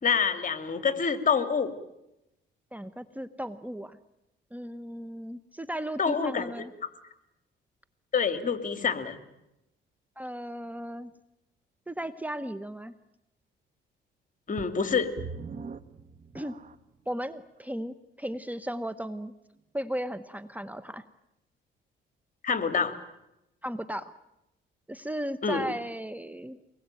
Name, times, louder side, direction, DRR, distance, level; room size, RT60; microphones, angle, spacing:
voice 1, 0.0-1.7 6.0-6.7 8.1-9.2 14.5-15.1 22.4-23.0 25.4-25.6, left 6 dB, 40° left, 10 dB, 2.7 m, -27 dB
voice 2, 2.7-4.0 4.5-6.7 10.2-11.1 11.9-12.9 16.3-16.5 17.1-19.3 19.7-21.0 23.6-24.1 24.9-26.6, equal, 10° right, 12 dB, 1.0 m, -36 dB
sound 1, 14.6-17.0 17.7-17.8 18.4-18.5, right 5 dB, 40° right, 1.3 m, -42 dB
24.5 x 21.0 x 9.1 m, 0.89 s
cardioid pair, 90°, 20 cm